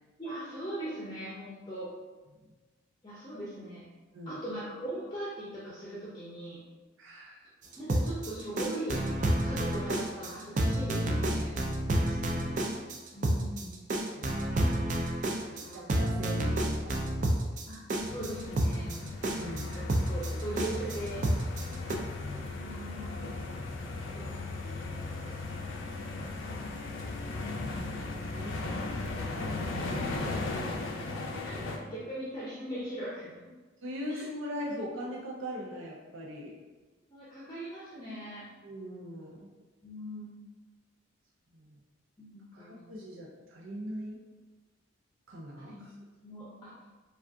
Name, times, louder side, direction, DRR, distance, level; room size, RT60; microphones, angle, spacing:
voice 1, 0.2-1.9 3.0-3.8 4.3-6.6 7.8-9.0 9.4-11.5 13.1-13.7 15.6-15.8 17.7-17.8 18.0-18.9 19.5-19.8 20.1-21.2 22.3-23.3 23.9-25.9 27.6-28.1 29.7-30.3 31.4-31.6 31.9-33.5 34.1-34.3 37.1-38.5 39.8-40.3 42.2-42.8 45.6-45.8 46.2-46.7, right 1 dB, 20° left, -7 dB, 0.6 m, -40 dB
voice 2, 7.0-7.5 12.0-12.7 13.9-14.3 15.3-17.4 18.8-18.9 19.4-19.9 21.5-21.8 22.3-22.4 28.3-28.9 33.8-36.5 38.6-39.5 41.5-41.8 42.5-44.2 45.3-45.9, equal, 75° right, -3 dB, 0.6 m, -41 dB
sound 1, 7.7-21.9, right 1 dB, 40° right, 0.3 m, -29 dB
sound 2, 18.0-31.8, left 2 dB, 70° left, 0.5 m, -36 dB
4.8 x 2.4 x 2.6 m, 1.3 s
head